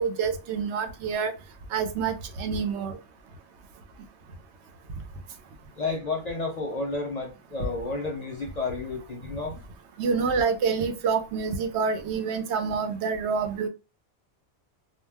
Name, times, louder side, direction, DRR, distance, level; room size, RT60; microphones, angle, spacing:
voice 1, 0.0-1.3 1.7-3.0 10.0-13.7, right 5 dB, 80° right, 0.8 m, -27 dB
voice 2, 5.7-9.6, left 3 dB, 50° left, 0.5 m, -31 dB
2.2 x 2.1 x 3.3 m
omnidirectional pair, 1.1 m